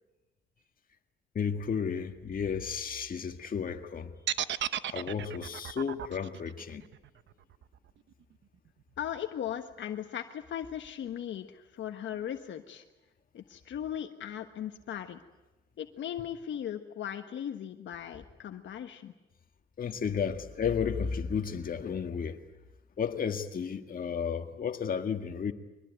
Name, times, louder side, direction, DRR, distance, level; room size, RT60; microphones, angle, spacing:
voice 1, 1.4-4.1 4.5-6.8 19.8-22.4 23.0-25.5, left 6 dB, 45° left, 1.9 m, -33 dB
sound 1, 4.3-8.3, right 10 dB, 65° right, 0.9 m, -35 dB
voice 2, 9.0-12.8 13.3-15.2 15.8-19.1, left 10 dB, 70° left, 1.4 m, -38 dB
24.0 x 20.0 x 9.3 m
cardioid pair, 90°, 20 cm